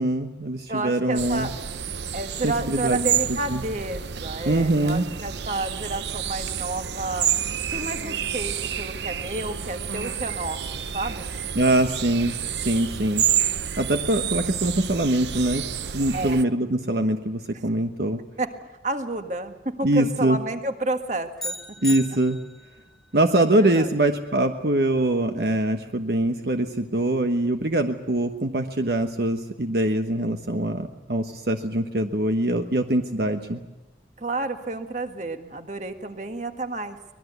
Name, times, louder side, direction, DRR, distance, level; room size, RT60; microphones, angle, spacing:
voice 1, 0.0-1.5 2.4-3.6 4.4-5.0 11.5-13.3 13.8-15.7 15.9-18.2 19.8-20.4 21.8-22.4 23.1-33.6, right 1 dB, 65° right, 6 dB, 1.2 m, -23 dB
voice 2, 0.7-1.5 2.1-7.3 7.7-10.6 10.9-11.3 16.1-16.4 18.4-18.5 18.8-21.6 23.5-23.9 34.2-37.0, right 2 dB, 40° right, 7 dB, 1.7 m, -30 dB
sound 1, 1.2-16.4, right 8 dB, 80° right, 0.8 m, -29 dB
sound 2, 21.4-22.8, left 1 dB, ahead, 1.5 m, -35 dB
24.5 x 20.0 x 8.2 m, 1.1 s
head